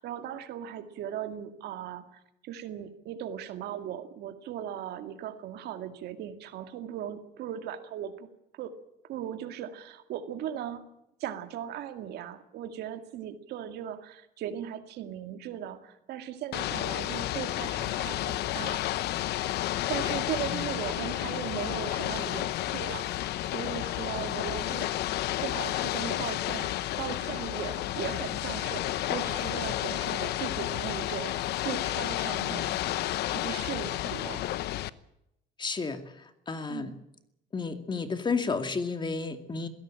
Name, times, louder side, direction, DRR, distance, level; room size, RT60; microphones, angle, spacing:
voice 1, 0.0-8.3 8.6-8.7 9.1-10.9 11.2-18.9 19.9-24.9 25.4-32.7 33.3-34.5 36.7-36.9, right 10 dB, 75° right, 8 dB, 2.2 m, -38 dB
Ocean / Boat Water vehicle, 16.5-34.9, left 14 dB, 75° left, 0.9 m, -31 dB
voice 2, 35.6-36.9 37.5-39.7, left 4 dB, 25° left, 8 dB, 2.4 m, -32 dB
21.5 x 17.0 x 8.8 m, 0.83 s
cardioid pair, 110°, 17 cm